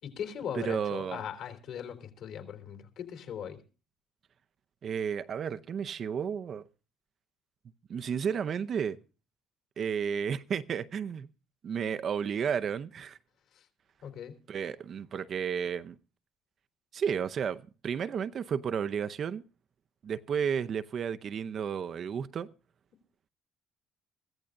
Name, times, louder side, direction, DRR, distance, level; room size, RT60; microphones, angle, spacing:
voice 1, 0.0-3.6 13.5-13.7 14.0-14.4, left 8 dB, 60° left, 3.6 m, -39 dB
voice 2, 0.5-1.2 4.8-6.7 7.9-9.0 9.8-11.3 11.6-13.2 14.5-16.0 16.9-19.4 20.0-22.5, right 7 dB, 40° right, 0.6 m, -32 dB
23.0 x 15.0 x 2.5 m
cardioid pair, 130°, 0 cm